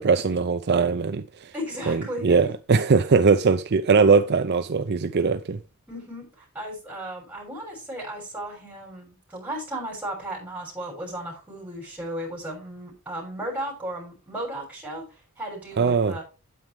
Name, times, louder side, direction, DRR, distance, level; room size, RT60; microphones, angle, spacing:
voice 1, 0.0-1.5 1.9-5.6 15.8-16.2, right 4 dB, 50° right, 0.5 m, -21 dB
voice 2, 1.5-2.4 5.9-15.0 15.4-16.2, right 1 dB, 5° right, 6.9 m, -35 dB
9.4 x 8.5 x 3.5 m
head